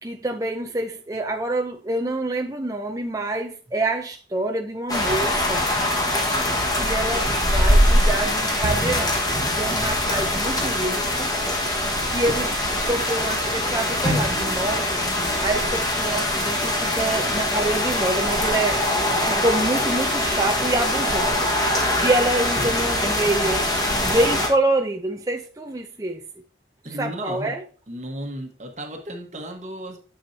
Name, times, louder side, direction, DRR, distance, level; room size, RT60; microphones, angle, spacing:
voice 1, 0.0-5.6 6.8-9.2 9.5-11.3 12.1-15.0 15.4-18.8 19.3-21.5 22.0-23.6 24.0-26.2 26.8-27.6, right 2 dB, 20° right, 0.6 m, -26 dB
sound 1, 4.9-24.5, left 1 dB, 20° left, 1.5 m, -23 dB
sound 2, 8.6-19.3 19.6-20.3 20.6-20.9 21.1-21.5 21.8-21.9 22.4-22.9 23.3-23.4 23.9-24.0, right 2 dB, 75° right, 0.8 m, -40 dB
sound 3, 11.4-17.3, left 1 dB, 75° left, 3.0 m, -42 dB
voice 2, 26.8-27.6 27.9-30.0, right 1 dB, 40° right, 1.4 m, -34 dB
9.9 x 7.0 x 2.8 m
head